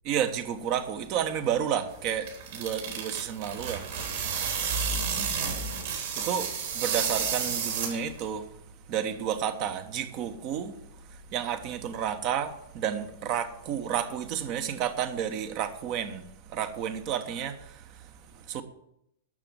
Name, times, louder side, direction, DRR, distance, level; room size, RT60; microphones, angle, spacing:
voice 1, 0.1-2.3 2.5-3.8 5.2-5.3 6.1-6.5 6.7-8.4 8.9-10.7 11.3-16.2 16.5-17.5 18.5-18.6, right 9 dB, 40° right, 1.2 m, -31 dB
sound 1, 1.9-8.3, right 6 dB, 55° right, 3.7 m, -31 dB
12.5 x 6.9 x 7.7 m
figure-of-eight pair, 100°, 0 cm